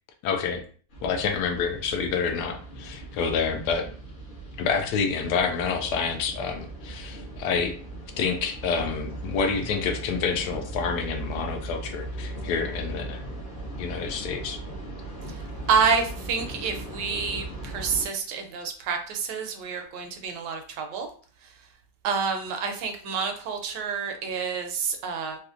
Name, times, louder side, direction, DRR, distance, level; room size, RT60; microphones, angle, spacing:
voice 1, 0.2-0.6 1.0-3.9 4.6-7.8 8.2-13.2 13.8-14.6, left 5 dB, 70° left, 6 dB, 1.0 m, -28 dB
sound 1, 0.9-18.0, right 1 dB, 45° left, 0.7 m, -38 dB
voice 2, 15.7-21.1 22.0-25.4, right 5 dB, 75° right, 4 dB, 1.2 m, -28 dB
3.3 x 2.8 x 2.4 m, 0.42 s
omnidirectional pair, 2.0 m